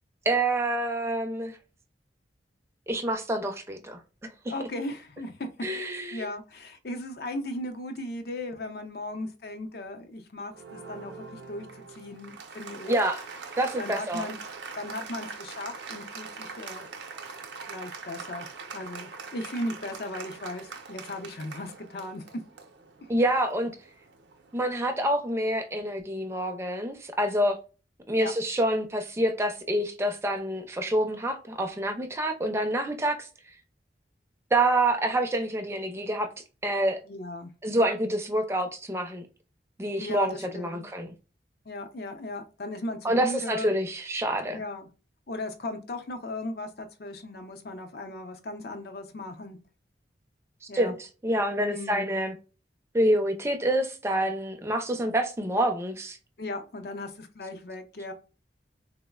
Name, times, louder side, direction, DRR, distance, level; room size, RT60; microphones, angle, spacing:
voice 1, 0.3-1.6 2.9-4.0 5.6-6.3 12.9-13.2 13.6-14.3 23.1-23.7 24.5-27.6 28.1-33.3 34.5-36.3 36.6-37.0 37.6-39.3 39.8-41.1 43.0-44.6 50.7-52.3 52.9-56.2, right 1 dB, 15° right, 0.4 m, -27 dB
voice 2, 4.5-5.5 6.1-13.0 13.8-14.4 14.7-16.9 17.7-22.2 28.2-28.3 37.1-37.5 40.0-40.8 41.7-43.7 44.5-44.9 45.3-49.6 50.7-50.9 51.7-52.1 56.4-58.1, left 1 dB, 60° left, 0.5 m, -37 dB
Applause, 10.5-24.9, right 4 dB, 75° right, 0.5 m, -43 dB
3.8 x 2.0 x 2.2 m
head